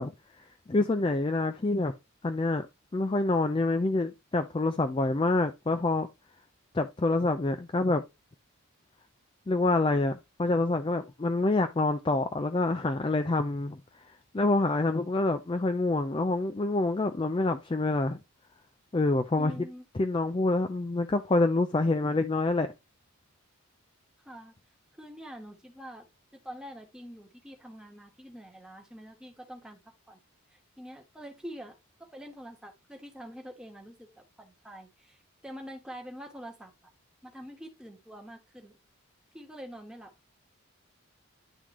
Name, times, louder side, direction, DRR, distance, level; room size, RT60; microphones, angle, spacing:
voice 1, 0.0-1.9 2.2-2.7 2.9-6.1 6.7-8.0 9.5-13.8 14.3-18.2 18.9-19.5 20.0-22.7, left 2 dB, 25° left, 0.3 m, -27 dB
voice 2, 19.4-19.8 24.2-24.5 24.9-26.0 26.3-29.8 30.1-30.2 30.5-31.8 32.1-36.7 37.2-38.8 39.3-40.1, equal, 5° right, 1.2 m, -45 dB
10.0 x 3.7 x 3.0 m
head